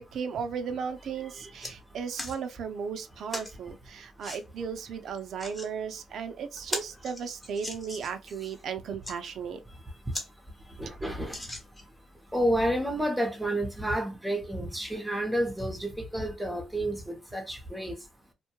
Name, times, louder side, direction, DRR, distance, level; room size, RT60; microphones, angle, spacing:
voice 1, 0.0-9.6, right 6 dB, 65° right, 0.5 m, -36 dB
sound 1, 0.9-1.0 1.3-1.7 2.2-2.4 3.3-3.5 4.2-4.4 5.2-5.7 6.1-6.2 6.5-8.2 8.8-9.2 9.7-9.8 10.1-10.3 10.6-10.7 11.3-12.0 12.6-12.7, left 1 dB, 15° left, 1.0 m, -38 dB
voice 2, 10.8-11.3 12.3-17.0 17.3-17.9, right 1 dB, 5° right, 0.8 m, -30 dB
2.6 x 2.2 x 2.9 m
cardioid pair, 90°, 0 cm